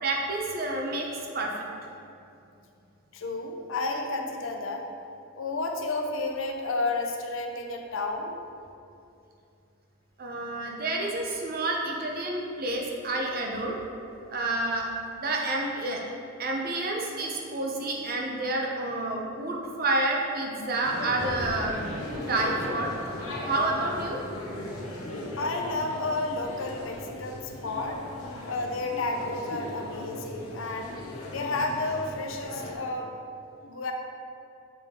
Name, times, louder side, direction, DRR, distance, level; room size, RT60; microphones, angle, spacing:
voice 1, 0.0-1.7 10.2-13.8 14.3-14.9 15.1-16.0 16.4-22.9 23.4-24.2, right 2 dB, 45° right, 0 dB, 0.7 m, -29 dB
voice 2, 3.1-4.9 5.4-8.4 25.3-28.0 28.4-30.9 31.3-33.1 33.6-33.9, left 2 dB, 65° left, 3 dB, 0.6 m, -31 dB
sound 1, 20.8-32.7, left 1 dB, 80° left, 1.0 m, -38 dB
7.6 x 3.7 x 3.6 m, 2.6 s
head